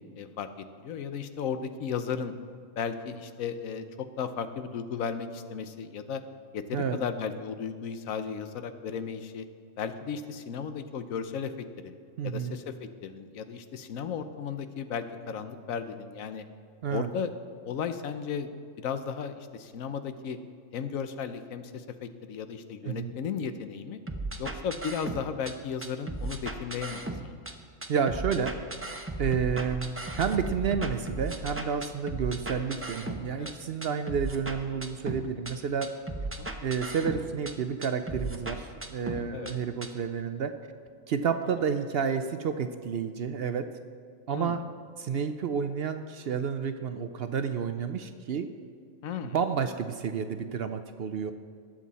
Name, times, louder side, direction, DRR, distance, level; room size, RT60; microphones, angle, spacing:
voice 1, 0.2-2.3 2.8-3.9 4.2-6.2 6.5-9.4 9.8-12.0 12.2-16.4 16.9-17.3 17.7-18.5 18.8-20.4 20.7-24.0 24.4-27.3 30.2-30.3 33.4-33.5 36.4-36.5 39.3-39.6 44.3-44.6 49.0-49.3, left 6 dB, 85° left, 10 dB, 1.2 m, -35 dB
voice 2, 12.2-12.6 16.8-17.1 22.8-23.1 27.9-28.5 28.8-35.9 36.6-40.5 41.1-43.7 44.3-44.6 45.0-48.5 49.2-51.3, right 6 dB, 60° right, 9 dB, 0.7 m, -30 dB
sound 1, 24.1-25.5 25.8-27.5 27.8-33.5 33.8-35.5 35.8-37.5 37.8-39.5 39.8-39.9, right 2 dB, 15° right, 0.5 m, -36 dB
19.5 x 7.5 x 4.1 m, 2.2 s
omnidirectional pair, 1.4 m